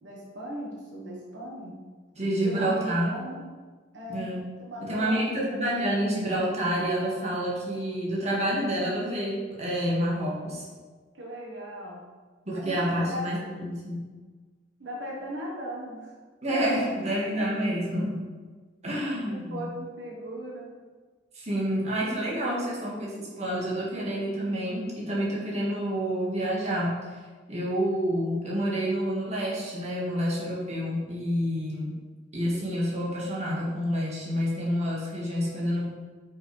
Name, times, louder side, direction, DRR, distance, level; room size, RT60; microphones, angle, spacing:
voice 1, 0.0-1.8 2.4-3.5 3.9-4.3 4.6-5.6 11.1-12.0 12.5-13.4 14.8-16.1 16.5-17.5 19.3-20.7, equal, 80° right, -3 dB, 1.3 m, -38 dB
voice 2, 2.2-3.1 4.1-4.4 4.8-10.7 12.5-14.0 16.4-18.2 18.8-19.7 21.3-27.0 27.5-32.0 32.3-35.9, equal, 40° right, -5 dB, 1.8 m, -28 dB
5.9 x 5.2 x 4.8 m, 1.4 s
head